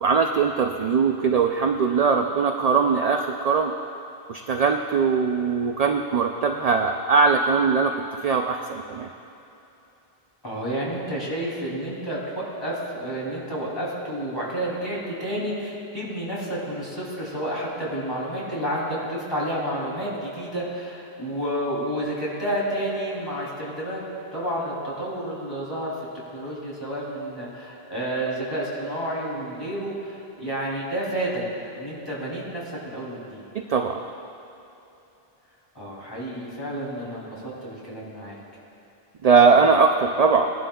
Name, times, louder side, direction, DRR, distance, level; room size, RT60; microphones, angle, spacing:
voice 1, 0.0-3.7 4.3-7.9 8.2-9.1 33.5-34.0 39.2-40.5, right 5 dB, 50° right, 4 dB, 0.5 m, -20 dB
voice 2, 10.4-24.0 24.3-25.9 26.3-31.4 31.7-33.4 35.7-38.4, right 1 dB, 25° left, -6 dB, 2.9 m, -30 dB
19.0 x 11.0 x 2.3 m, 3.0 s
omnidirectional pair, 1.1 m